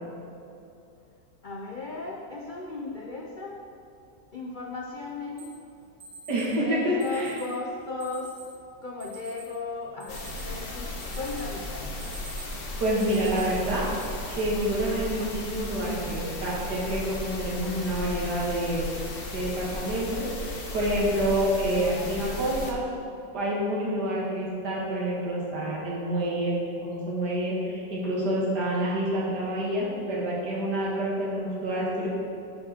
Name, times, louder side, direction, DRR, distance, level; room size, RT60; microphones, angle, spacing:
voice 1, 1.4-3.6 4.3-5.6 6.6-8.4 8.8-12.0, left 3 dB, 75° left, -2 dB, 0.4 m, -36 dB
Alarm, 5.4-5.5 6.0-6.5 7.0-7.5 8.0-8.5 9.0-9.5 9.8-10.6 11.0-11.5 11.8-12.6 13.0-13.4 14.0-14.1 14.9-15.2, right 3 dB, 20° right, 1.2 m, -45 dB
voice 2, 6.3-7.4 12.8-13.9 14.3-18.9 19.3-22.8 23.3-26.6 26.8-32.1, right 1 dB, 65° right, -5 dB, 2.5 m, -28 dB
sound 1, 10.1-22.7, left 2 dB, 40° left, 0.9 m, -35 dB
11.5 x 4.9 x 4.4 m, 2.7 s
omnidirectional pair, 1.9 m